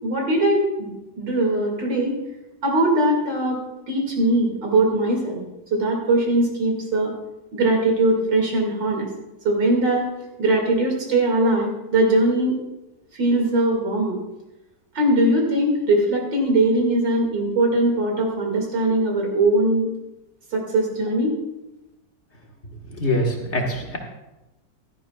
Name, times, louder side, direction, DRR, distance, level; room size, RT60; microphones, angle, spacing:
voice 1, 0.0-0.9 1.2-2.2 2.6-5.4 5.7-7.1 7.5-9.1 9.4-10.1 10.4-12.6 13.1-14.2 14.9-19.9 20.5-21.4, right 1 dB, 70° right, 0 dB, 3.0 m, -21 dB
voice 2, 22.9-24.0, left 1 dB, 40° left, 0 dB, 1.7 m, -24 dB
16.5 x 12.0 x 2.4 m, 0.98 s
omnidirectional pair, 2.0 m